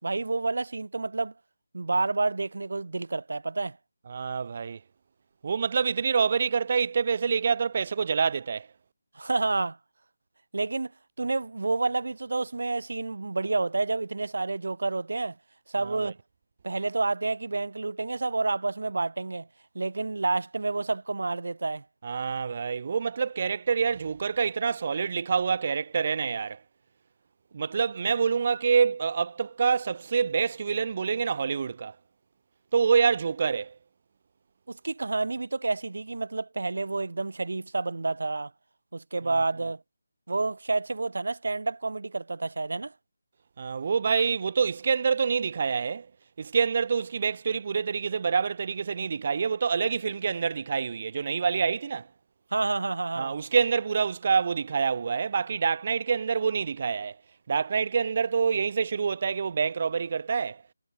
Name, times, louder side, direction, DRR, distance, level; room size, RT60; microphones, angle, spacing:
voice 1, 0.0-1.3 1.7-3.8 9.1-9.8 10.5-10.9 11.2-15.4 15.7-16.2 16.6-19.5 19.7-21.8 34.7-38.5 38.9-39.8 40.3-42.9 52.5-53.3, right 3 dB, 65° right, 2.5 m, -29 dB
voice 2, 4.1-4.8 5.4-8.7 15.8-16.1 22.0-26.6 27.5-32.0 32.7-33.8 43.6-46.1 46.4-52.1 53.2-57.2 57.5-60.6, right 6 dB, 30° right, 0.3 m, -26 dB
figure-of-eight pair, 175°, 0 cm